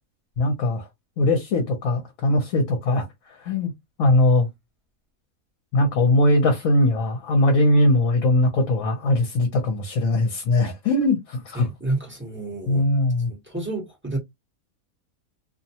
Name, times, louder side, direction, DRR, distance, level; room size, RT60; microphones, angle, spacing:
voice 1, 0.4-0.8 1.2-3.1 3.4-3.7 4.0-4.5 5.7-11.7 12.7-13.3, left 1 dB, 65° left, 1.1 m, -20 dB
voice 2, 11.5-12.9 13.3-14.2, right 2 dB, 10° right, 0.9 m, -30 dB
2.6 x 2.1 x 2.7 m
omnidirectional pair, 1.5 m